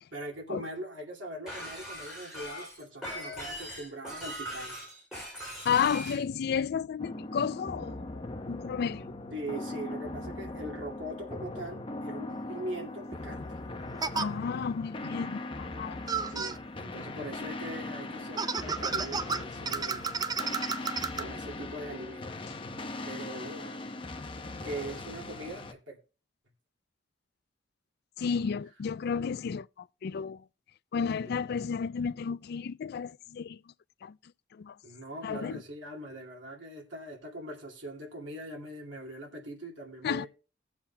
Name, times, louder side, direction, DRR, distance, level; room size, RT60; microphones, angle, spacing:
voice 1, 0.1-4.9 9.3-13.6 16.1-20.1 21.1-22.3 23.1-23.8 24.6-26.0 31.2-31.4 34.8-40.3, right 1 dB, 90° right, 2.4 m, -41 dB
Shatter, 1.5-6.2, equal, 5° right, 6.8 m, -40 dB
voice 2, 5.6-9.1 14.2-16.0 28.2-30.4 30.9-33.6 34.0-34.2 34.5-34.7 35.2-35.6 40.0-40.3, left 6 dB, 60° left, 0.3 m, -32 dB
sound 1, 7.0-25.7, left 2 dB, 30° left, 0.8 m, -40 dB
sound 2, 12.6-12.7 14.0-14.3 16.1-16.6 18.4-21.2, right 5 dB, 20° right, 0.5 m, -32 dB
18.5 x 7.2 x 2.3 m
head